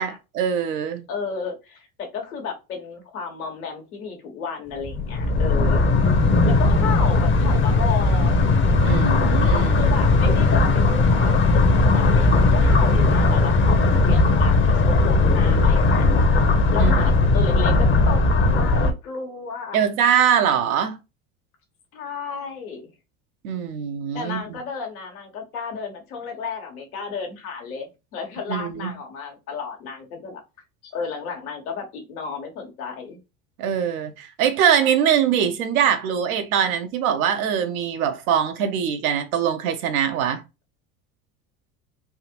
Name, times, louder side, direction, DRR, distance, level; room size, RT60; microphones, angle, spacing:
voice 1, 0.0-1.0 8.8-9.9 16.8-17.1 19.7-21.0 23.4-24.6 28.5-28.9 33.6-40.4, right 8 dB, 80° right, 0.9 m, -22 dB
voice 2, 1.1-1.9 2.1-5.8 6.4-8.4 9.7-16.1 16.7-18.2 18.5-19.9 21.9-22.9 24.1-30.4 30.8-33.2, left 5 dB, 90° left, 1.4 m, -32 dB
sound 1, 4.8-18.9, left 3 dB, 30° left, 0.8 m, -18 dB
3.7 x 2.5 x 2.9 m
hypercardioid pair, 85°, 42 cm